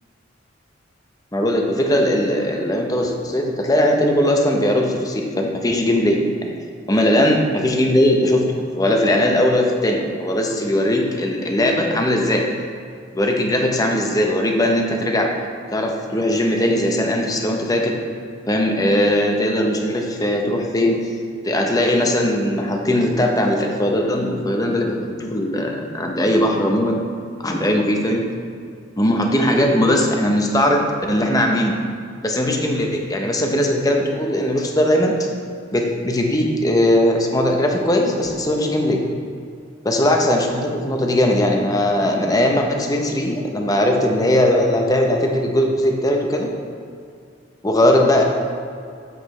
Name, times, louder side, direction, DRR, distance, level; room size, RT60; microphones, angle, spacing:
voice 1, 1.3-6.5 6.9-8.5 8.8-12.4 13.1-15.3 15.7-18.0 18.5-21.0 21.4-27.0 27.4-28.3 29.0-31.8 32.2-35.3 35.7-39.0 39.8-46.5 47.6-48.2, left 1 dB, 20° left, 1 dB, 0.8 m, -19 dB
8.5 x 8.0 x 3.2 m, 2.2 s
head